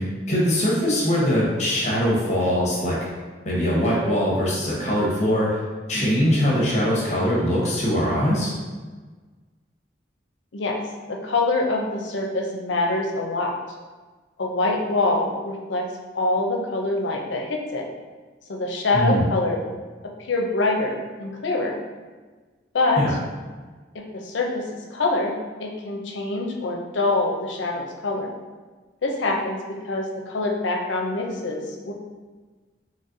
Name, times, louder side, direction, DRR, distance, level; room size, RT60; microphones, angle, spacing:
voice 1, 0.0-3.0 3.4-5.6 5.9-8.5 18.9-19.2 23.0-23.1, equal, 40° left, -5 dB, 0.9 m, -22 dB
voice 2, 11.1-13.5 14.4-15.8 16.1-17.8 18.5-19.6 20.3-21.8 22.7-23.0 23.9-24.6 24.9-25.3 25.6-28.3 29.0-31.9, left 2 dB, 75° left, 1 dB, 0.6 m, -25 dB
4.0 x 3.1 x 2.6 m, 1.3 s
head